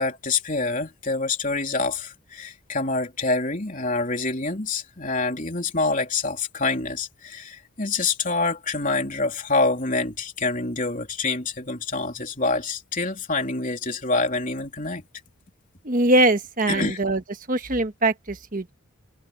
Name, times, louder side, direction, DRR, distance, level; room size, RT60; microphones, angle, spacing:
voice 1, 0.0-15.0 16.7-17.0, left 3 dB, 35° left, 3.6 m, -26 dB
voice 2, 15.8-17.2 17.5-18.7, right 2 dB, 40° right, 1.4 m, -22 dB
head